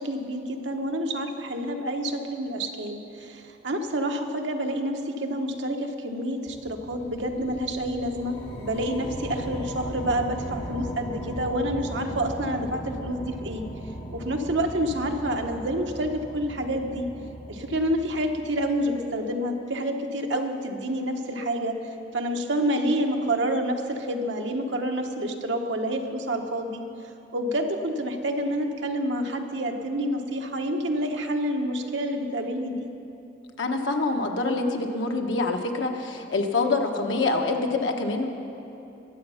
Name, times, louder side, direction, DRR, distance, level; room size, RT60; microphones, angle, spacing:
voice 1, 0.0-13.7 14.1-17.1 17.5-21.8 22.1-26.8 27.3-32.9, right 1 dB, 75° right, 3 dB, 1.1 m, -28 dB
sound 1, 6.5-19.0, equal, 55° left, 2.6 m, -38 dB
voice 2, 33.6-38.3, left 3 dB, 85° left, 3 dB, 1.2 m, -26 dB
22.0 x 8.1 x 5.7 m, 3.0 s
head